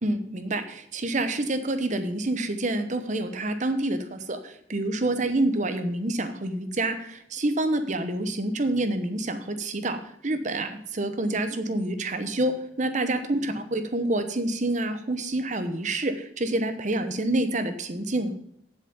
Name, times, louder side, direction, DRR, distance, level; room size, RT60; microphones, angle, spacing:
voice 1, 0.0-18.3, right 2 dB, 40° right, 8 dB, 0.9 m, -27 dB
7.8 x 7.3 x 7.1 m, 0.73 s
head